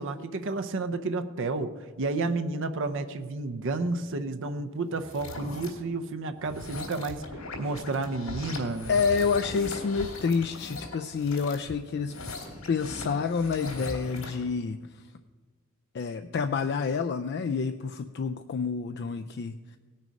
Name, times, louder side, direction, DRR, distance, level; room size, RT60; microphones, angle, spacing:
voice 1, 0.0-7.2 7.6-8.9, right 3 dB, 60° right, 9 dB, 0.6 m, -31 dB
sound 1, 5.0-5.7 6.4-14.4, left 2 dB, 90° left, 3.1 m, -40 dB
voice 2, 8.9-12.2 12.7-14.8 15.9-19.8, left 5 dB, 50° left, 8 dB, 0.4 m, -28 dB
17.5 x 6.5 x 5.2 m, 1.4 s
head